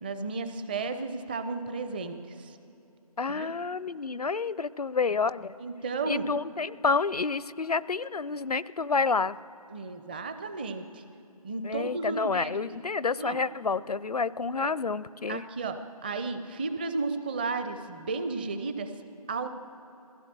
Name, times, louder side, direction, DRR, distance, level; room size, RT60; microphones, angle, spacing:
voice 1, 0.0-2.6 3.3-3.5 5.6-6.3 9.7-11.0 11.4-12.5 13.2-13.4 14.6-14.7 15.3-18.9 19.3-19.5, right 3 dB, 15° right, 9 dB, 0.6 m, -33 dB
voice 2, 3.2-5.5 6.1-9.4 11.6-15.4, left 4 dB, 75° left, 19 dB, 0.6 m, -29 dB
22.0 x 16.0 x 7.6 m, 2.7 s
figure-of-eight pair, 155°, 20 cm